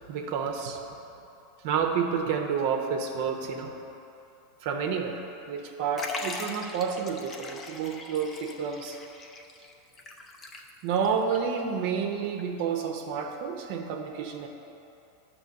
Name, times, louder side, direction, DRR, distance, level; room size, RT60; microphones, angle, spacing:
voice 1, 0.1-0.8 1.6-3.7 4.6-5.2 5.5-9.0 10.8-14.5, right 6 dB, 60° right, 3 dB, 0.7 m, -29 dB
Liquid, 6.0-11.1 11.3-11.4 12.4-12.5, left 3 dB, 25° left, 0.6 m, -40 dB
9.2 x 3.2 x 6.3 m, 2.8 s
supercardioid pair, 135°, 0 cm